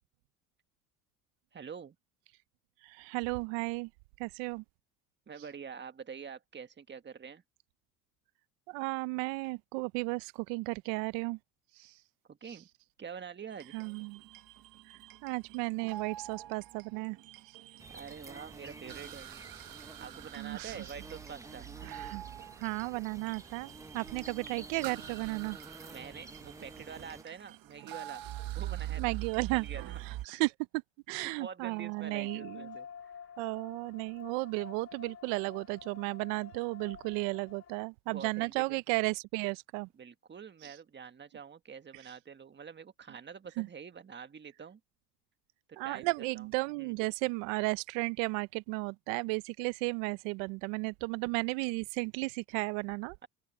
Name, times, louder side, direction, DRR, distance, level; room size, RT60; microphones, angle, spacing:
voice 1, 1.5-1.9 5.3-7.4 12.3-12.7 13.0-13.8 17.9-19.3 20.0-21.7 25.8-28.2 28.5-29.2 29.5-30.0 31.1-33.1 38.1-38.8 39.9-44.8 45.8-46.5 46.8-46.9, right 6 dB, 30° right, 1.6 m, -46 dB
voice 2, 2.8-3.9 4.2-4.6 8.7-11.4 11.8-11.9 13.7-14.2 15.2-17.2 20.4-20.7 21.8-22.2 22.6-25.6 29.0-29.7 30.3-30.5 31.1-32.8 33.4-39.9 40.6-40.7 43.6-43.7 45.8-53.1, right 27 dB, 85° right, 0.6 m, -34 dB
sound 1, 13.5-30.3, right 14 dB, 65° right, 1.5 m, -45 dB
sound 2, 17.8-27.2, right 2 dB, 10° right, 1.0 m, -50 dB
sound 3, 32.0-37.8, left 7 dB, 40° left, 2.5 m, -50 dB
open air
supercardioid pair, 85°, 37 cm